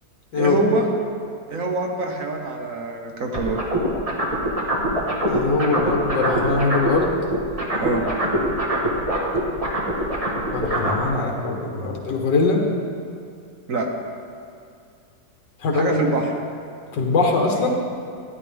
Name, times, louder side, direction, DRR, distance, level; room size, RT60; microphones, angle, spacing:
voice 1, 0.3-0.9 1.5-3.6 7.8-8.1 13.7-13.9 15.7-16.3, right 3 dB, 55° right, 1 dB, 1.2 m, -24 dB
Voice Wah-Wah, 3.3-7.0 7.3-11.0, right 1 dB, 20° right, 1.3 m, -23 dB
voice 2, 5.3-7.2 10.5-12.6 15.6-16.0 16.9-17.8, left 3 dB, 75° left, 0 dB, 1.9 m, -22 dB
13.5 x 9.6 x 3.5 m, 2.4 s
omnidirectional pair, 1.9 m